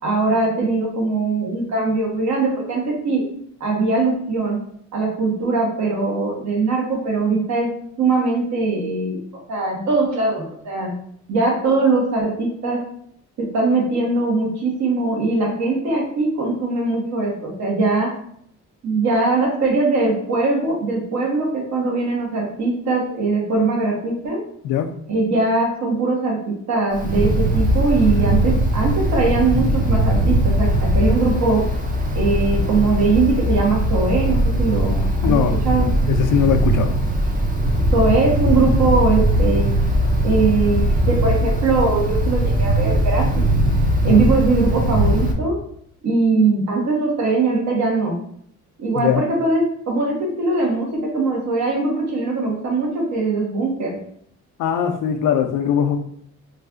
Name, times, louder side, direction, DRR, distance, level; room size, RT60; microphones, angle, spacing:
voice 1, 0.0-3.2 3.6-4.6 4.9-7.7 8.0-9.2 9.5-10.9 11.3-12.8 13.4-18.1 18.8-24.4 25.1-31.6 32.1-35.9 37.9-39.7 40.2-43.5 44.0-45.6 46.0-48.2 48.8-54.0, right 3 dB, 65° right, -1 dB, 1.2 m, -21 dB
Wind, 26.9-45.3, right 1 dB, 30° right, 0.6 m, -19 dB
voice 2, 35.2-35.5 36.1-36.9 44.0-44.3 49.0-49.2 54.6-56.0, left 8 dB, 90° left, 7 dB, 0.5 m, -20 dB
3.1 x 2.4 x 3.7 m, 0.68 s
cardioid pair, 90°, 30 cm